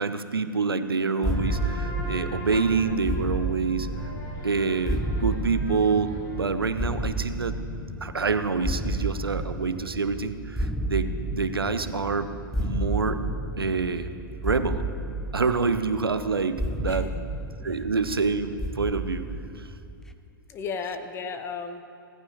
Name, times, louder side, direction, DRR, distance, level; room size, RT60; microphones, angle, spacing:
voice 1, 0.0-3.9 4.4-7.6 8.0-12.3 12.6-13.2 13.6-14.1 14.4-14.8 15.3-17.1 17.6-19.3 19.5-19.7, right 4 dB, 85° right, 11 dB, 0.8 m, -27 dB
sound 1, 1.2-8.5, left 1 dB, 40° left, 3.3 m, -40 dB
sound 2, 1.2-20.1, right 1 dB, 5° left, 0.5 m, -32 dB
voice 2, 16.9-17.2 20.5-21.8, left 5 dB, 20° left, 7 dB, 1.0 m, -34 dB
17.5 x 15.0 x 3.1 m, 2.5 s
figure-of-eight pair, 115°, 12 cm